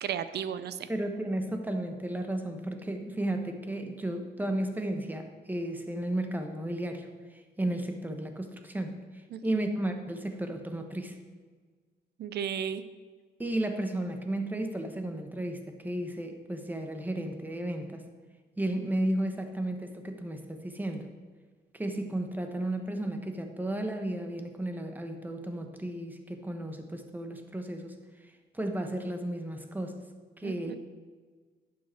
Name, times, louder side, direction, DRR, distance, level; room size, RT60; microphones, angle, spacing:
voice 1, 0.0-0.9 9.3-9.7 12.2-12.8 30.4-30.8, right 8 dB, 70° right, 13 dB, 0.6 m, -34 dB
voice 2, 0.9-11.2 13.4-18.0 18.6-21.1 21.7-27.9 28.2-30.0 30.4-30.8, right 1 dB, 10° right, 5 dB, 1.1 m, -34 dB
11.5 x 7.6 x 4.5 m, 1.5 s
cardioid pair, 130°, 18 cm